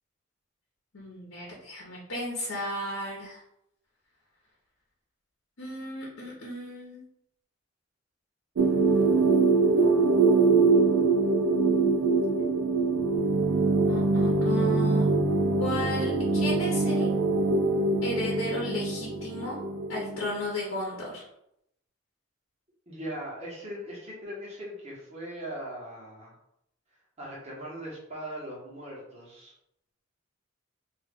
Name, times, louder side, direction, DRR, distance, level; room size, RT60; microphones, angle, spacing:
voice 1, 0.9-3.4 5.6-7.0 13.9-15.1 15.6-17.1 18.0-19.6 19.9-21.2, left 1 dB, 70° left, -4 dB, 0.9 m, -34 dB
sound 1, 8.6-20.5, right 3 dB, 80° right, 0.4 m, -23 dB
voice 2, 22.9-26.3 27.2-29.5, equal, 30° right, -5 dB, 1.3 m, -39 dB
3.0 x 2.7 x 3.6 m, 0.78 s
head